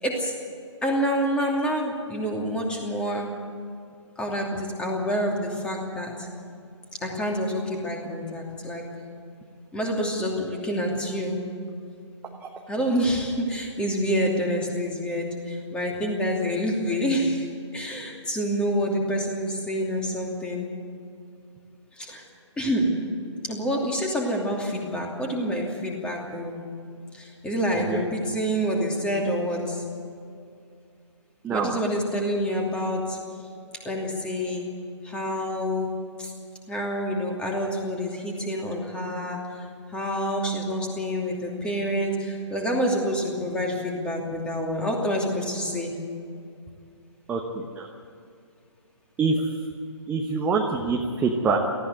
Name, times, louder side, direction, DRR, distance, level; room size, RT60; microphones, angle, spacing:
voice 1, 0.0-0.3 0.8-3.3 4.2-6.3 7.0-8.8 9.7-11.5 12.7-20.7 21.9-22.2 22.6-22.9 23.4-26.6 27.1-29.8 31.5-33.2 33.8-34.6 35.0-35.9 36.2-36.3 36.7-45.9, equal, 5° left, 0 dB, 2.8 m, -27 dB
voice 2, 47.3-47.9 49.2-49.4 50.1-51.6, right 4 dB, 10° right, 1 dB, 1.1 m, -25 dB
18.5 x 15.0 x 9.5 m, 2.5 s
figure-of-eight pair, 135°, 16 cm